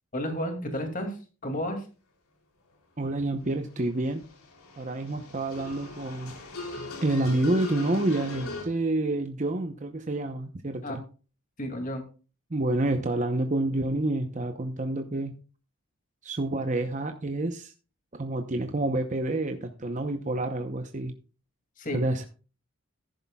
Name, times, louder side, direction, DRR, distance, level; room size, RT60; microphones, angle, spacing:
voice 1, 0.1-1.2 1.4-1.8 10.8-11.0 11.6-12.0 21.8-22.0, equal, 40° left, 5 dB, 2.4 m, -31 dB
voice 2, 3.0-4.3 4.8-6.3 6.8-11.0 12.5-15.4 16.2-17.7 18.1-21.1 21.9-22.3, right 2 dB, 35° right, 6 dB, 0.8 m, -28 dB
sound 1, 3.3-3.4 3.8-8.6, left 2 dB, 85° left, 3.1 m, -39 dB
14.5 x 11.0 x 2.3 m, 0.35 s
head